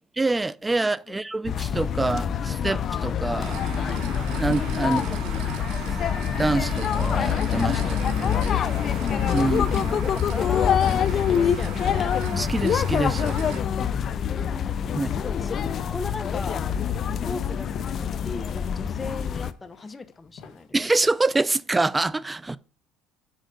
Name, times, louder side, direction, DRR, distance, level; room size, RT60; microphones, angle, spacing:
voice 1, 0.2-3.6 4.3-5.2 5.8-6.0 6.3-8.5 9.3-10.0 12.3-13.4 14.9-15.1 20.7-22.6, right 2 dB, 15° right, 0.4 m, -26 dB
voice 2, 0.8-1.2 4.8-5.3 9.9-12.1 14.2-16.6 17.3-20.8, left 3 dB, 15° left, 0.8 m, -38 dB
sound 1, 1.4-19.5, left 8 dB, 40° left, 0.5 m, -25 dB
sound 2, 3.4-13.6, right 7 dB, 75° right, 1.6 m, -38 dB
sound 3, 13.1-21.4, left 7 dB, 60° left, 1.5 m, -49 dB
6.3 x 4.8 x 6.5 m
cardioid pair, 120°, 0 cm